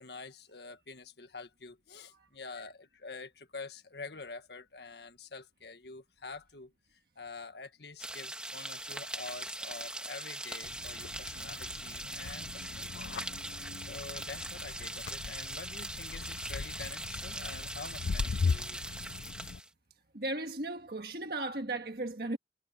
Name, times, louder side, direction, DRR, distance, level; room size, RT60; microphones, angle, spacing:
voice 1, 0.0-13.3 13.9-18.8, left 4 dB, 75° left, 1.6 m, -47 dB
sound 1, 8.0-19.7, right 1 dB, 5° right, 1.7 m, -41 dB
sound 2, 10.6-19.6, left 5 dB, 90° left, 0.5 m, -38 dB
voice 2, 20.1-22.4, right 2 dB, 60° right, 1.6 m, -36 dB
head